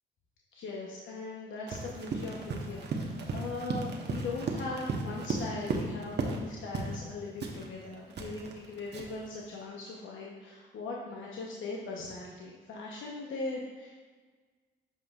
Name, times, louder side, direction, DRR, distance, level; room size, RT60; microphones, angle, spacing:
voice 1, 0.5-13.9, left 3 dB, 65° left, -3 dB, 0.9 m, -40 dB
Run, 1.7-6.5 6.7-7.0 7.4-9.3, right 3 dB, 55° right, 1.0 m, -35 dB
8.5 x 5.2 x 2.4 m, 1.4 s
hypercardioid pair, 50°, 21 cm